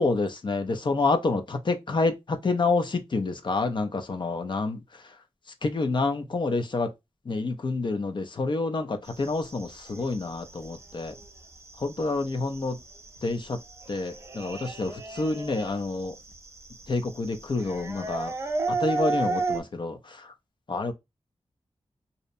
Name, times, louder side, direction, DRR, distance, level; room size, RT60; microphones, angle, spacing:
voice 1, 0.0-5.0 5.6-6.9 7.3-11.2 11.8-12.8 13.2-13.6 13.9-16.1 16.9-18.3 18.7-20.3 20.7-20.9, left 3 dB, 45° left, 0.5 m, -28 dB
sound 1, 9.1-19.6, right 3 dB, 25° right, 0.5 m, -34 dB
2.7 x 2.0 x 2.5 m
wide cardioid pair, 105°, 11 cm